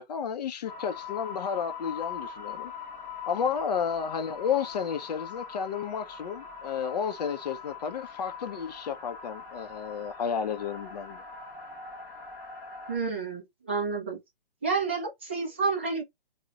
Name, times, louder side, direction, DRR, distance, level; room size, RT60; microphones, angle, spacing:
voice 1, 0.0-2.7 3.3-11.2, left 7 dB, 45° left, 0.5 m, -32 dB
sound 1, 0.6-13.0, left 6 dB, 20° left, 0.9 m, -42 dB
voice 2, 12.9-14.2 14.6-16.0, right 4 dB, 15° right, 0.3 m, -29 dB
2.3 x 2.1 x 3.8 m
hypercardioid pair, 155°, 29 cm